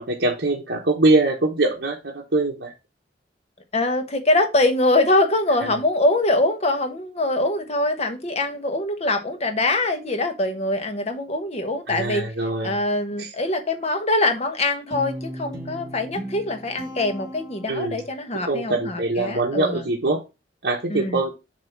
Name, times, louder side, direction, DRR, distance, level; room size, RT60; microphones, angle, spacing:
voice 1, 0.0-2.7 11.9-12.8 13.2-13.3 17.7-18.0 18.4-20.2 20.6-21.3, right 2 dB, 70° right, -2 dB, 1.1 m, -23 dB
voice 2, 3.7-12.2 12.6-19.8 20.9-21.2, left 2 dB, 40° left, 7 dB, 1.1 m, -23 dB
Guitar, 14.9-18.2, equal, 20° right, 1.9 m, -36 dB
7.2 x 2.9 x 5.9 m, 0.26 s
head